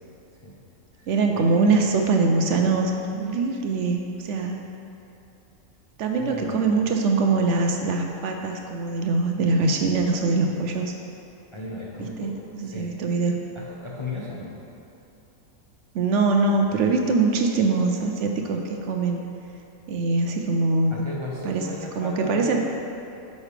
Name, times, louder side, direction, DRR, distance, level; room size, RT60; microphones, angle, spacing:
voice 1, 1.1-4.6 6.0-10.9 12.0-13.4 15.9-19.2 19.9-21.0 21.4-21.7 22.0-22.6, right 3 dB, 65° right, 3 dB, 0.8 m, -23 dB
voice 2, 6.2-6.8 11.5-12.3 12.6-12.9 13.5-14.6 20.9-22.6, left 2 dB, 30° left, -4 dB, 0.6 m, -35 dB
9.6 x 5.4 x 3.3 m, 2.7 s
omnidirectional pair, 1.4 m